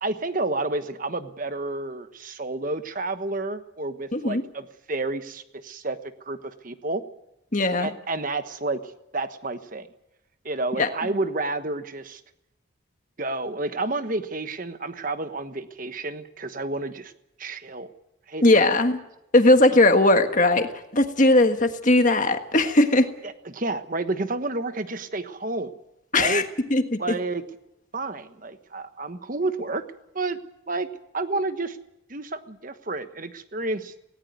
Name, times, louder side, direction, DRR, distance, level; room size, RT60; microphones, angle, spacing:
voice 1, 0.0-6.0 6.2-7.0 7.8-8.8 9.1-9.9 10.4-12.2 13.2-17.1 17.4-17.9 18.3-18.6 23.2-25.7 26.1-26.5 27.0-27.4 27.9-29.8 30.1-30.4 30.7-30.9 31.1-31.8 32.1-33.9, right 2 dB, 40° right, 10 dB, 1.2 m, -30 dB
voice 2, 4.1-4.4 7.5-7.9 10.8-10.9 18.4-19.0 19.3-23.1 26.1-26.4 26.7-27.0, left 2 dB, 40° left, 7 dB, 1.6 m, -19 dB
19.0 x 18.5 x 9.4 m, 0.88 s
head